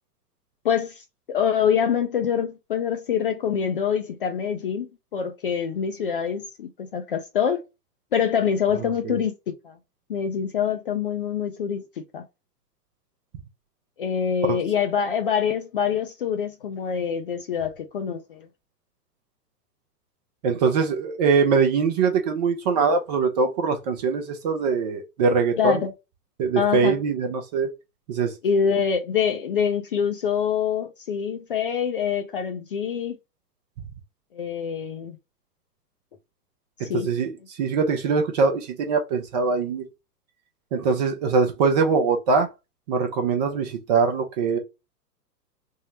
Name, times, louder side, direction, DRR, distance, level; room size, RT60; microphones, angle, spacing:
voice 1, 0.6-7.6 8.1-9.3 9.6-9.8 10.1-11.8 12.1-12.2 14.0-18.5 25.6-25.9 26.6-26.9 28.4-33.2 34.3-35.2 36.8-37.1, left 7 dB, 35° left, 0.4 m, -25 dB
voice 2, 20.4-25.8 26.4-27.7 28.1-28.3 36.8-37.3 37.6-39.9 40.7-42.5 42.9-44.6, right 5 dB, 25° right, 0.5 m, -22 dB
3.6 x 2.0 x 2.8 m
figure-of-eight pair, 105°, 49 cm